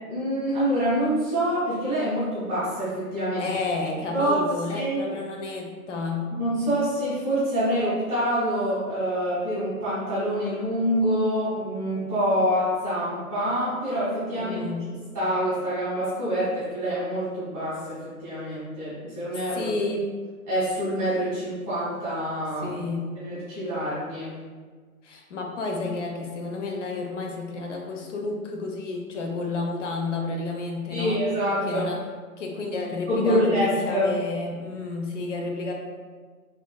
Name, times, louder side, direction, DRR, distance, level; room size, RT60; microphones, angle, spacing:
voice 1, 0.1-3.5 4.1-4.4 4.7-5.0 6.3-14.6 15.1-19.7 20.5-22.8 23.1-24.3 30.9-31.9 33.1-34.0, equal, 5° right, -21 dB, 0.4 m, -26 dB
voice 2, 3.4-6.3 14.4-14.9 19.5-20.1 22.6-23.1 25.0-31.2 31.6-32.0 32.4-35.7, left 3 dB, 55° left, 1 dB, 0.6 m, -31 dB
3.4 x 2.5 x 2.2 m, 1.5 s
figure-of-eight pair, 130°, 44 cm